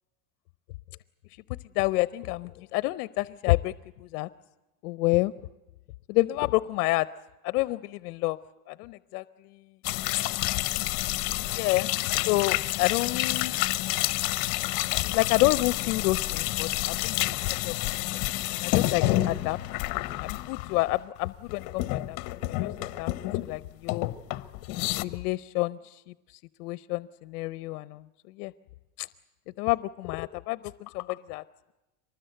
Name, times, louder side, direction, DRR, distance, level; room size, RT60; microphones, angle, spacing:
voice 1, 1.7-3.7 4.0-4.3 4.8-5.3 6.1-7.1 7.4-8.4 8.7-9.2 10.1-10.3 11.5-11.9 12.3-13.5 15.1-17.2 17.6-17.7 18.5-19.6 20.2-23.1 23.4-24.1 25.0-28.0 28.4-28.5 29.0-29.1 29.6-31.4, left 20 dB, 80° left, 17 dB, 0.7 m, -28 dB
sound 1, 9.8-21.2 21.5-23.6 23.9-25.0, left 17 dB, 50° left, 1.0 m, -29 dB
24.0 x 20.0 x 7.9 m, 1.0 s
supercardioid pair, 155°, 45 cm